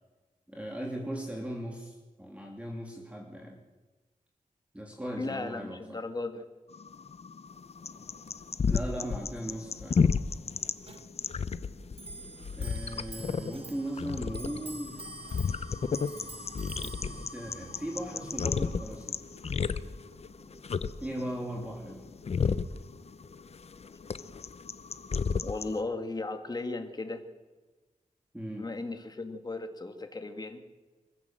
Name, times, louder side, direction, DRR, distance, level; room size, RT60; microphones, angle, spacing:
voice 1, 0.5-3.6 4.7-6.0 8.7-10.0 12.5-15.0 16.8-19.2 21.0-22.0 28.3-28.7, right 1 dB, 10° right, 0 dB, 3.1 m, -38 dB
voice 2, 5.2-6.4 25.4-27.2 28.6-30.6, left 3 dB, 30° left, 6 dB, 2.1 m, -36 dB
sound 1, 6.7-25.8, left 5 dB, 50° left, 0.8 m, -33 dB
Clock, 10.8-20.7, right 3 dB, 45° right, 1.5 m, -48 dB
sound 2, 13.1-18.9, right 3 dB, 65° right, 2.8 m, -51 dB
25.5 x 15.5 x 7.6 m, 1.2 s
wide cardioid pair, 115°, 14 cm